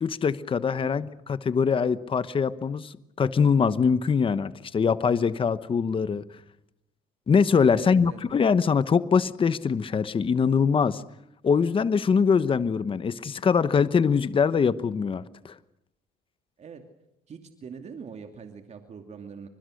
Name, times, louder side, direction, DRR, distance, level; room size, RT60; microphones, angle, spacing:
voice 1, 0.0-6.2 7.3-11.0 11.4-15.5, left 6 dB, 30° left, 14 dB, 1.1 m, -23 dB
voice 2, 7.7-8.2 16.6-16.8 17.3-19.5, right 6 dB, 40° right, 5 dB, 2.7 m, -42 dB
30.0 x 26.0 x 6.6 m, 0.80 s
cardioid pair, 110°, 17 cm